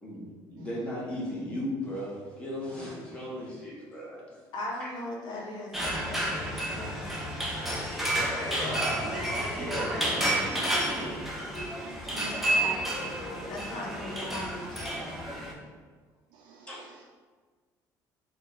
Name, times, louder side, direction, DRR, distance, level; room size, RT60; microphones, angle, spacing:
voice 1, 0.0-4.2 4.8-4.9 8.5-9.2 9.5-10.5 16.7-16.8, equal, 15° left, -6 dB, 1.1 m, -36 dB
voice 2, 4.5-7.2 12.0-15.4, left 1 dB, 65° left, -3 dB, 0.9 m, -39 dB
sound 1, 5.7-15.5, right 1 dB, 5° right, 0.7 m, -30 dB
voice 3, 11.6-12.5 16.3-16.7, right 6 dB, 75° right, -1 dB, 0.4 m, -51 dB
3.7 x 2.3 x 3.8 m, 1.4 s
cardioid pair, 130°, 8 cm